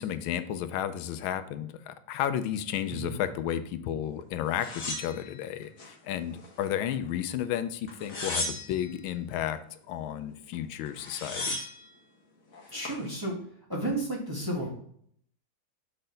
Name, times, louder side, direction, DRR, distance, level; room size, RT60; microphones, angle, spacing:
voice 1, 0.0-9.6 9.9-11.7, left 10 dB, 85° left, 11 dB, 1.4 m, -32 dB
sound 1, 4.6-5.9 6.4-7.1 7.9-9.0 10.5-10.6 10.8-11.8 12.5-13.0, left 2 dB, 45° left, 1.6 m, -36 dB
voice 2, 12.7-13.3 13.7-14.7, right 1 dB, 10° right, -3 dB, 1.3 m, -32 dB
6.4 x 4.1 x 3.8 m, 0.64 s
omnidirectional pair, 2.2 m